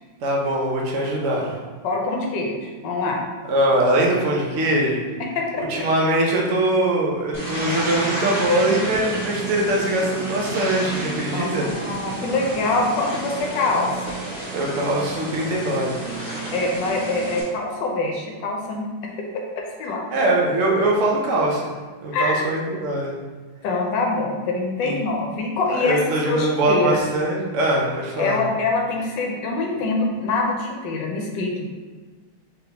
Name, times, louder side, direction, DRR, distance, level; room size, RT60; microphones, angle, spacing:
voice 1, 0.2-1.6 3.5-5.1 5.6-11.7 14.5-16.2 20.1-21.7 22.0-23.1 24.8-25.0 25.8-28.4, right 1 dB, 75° right, -2 dB, 0.7 m, -22 dB
voice 2, 1.8-3.2 5.3-5.8 11.3-14.2 16.5-18.9 19.8-20.0 22.1-22.5 23.6-26.0 26.3-27.0 28.2-31.7, left 3 dB, 70° left, 0 dB, 1.3 m, -24 dB
sound 1, 7.3-17.4, right 2 dB, 45° right, 1.4 m, -30 dB
3.8 x 3.4 x 2.9 m, 1.4 s
omnidirectional pair, 2.1 m